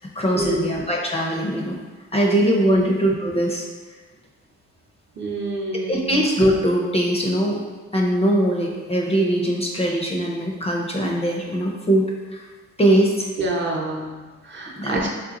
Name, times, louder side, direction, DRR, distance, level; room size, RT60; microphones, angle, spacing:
voice 1, 0.0-1.8 2.1-3.7 5.9-7.6 7.9-12.5 12.8-13.3 14.8-15.1, right 1 dB, 20° left, -1 dB, 0.5 m, -21 dB
voice 2, 5.2-6.1 13.4-15.1, right 2 dB, 40° right, -1 dB, 0.7 m, -27 dB
3.3 x 2.9 x 3.6 m, 1.3 s
cardioid pair, 90°, 30 cm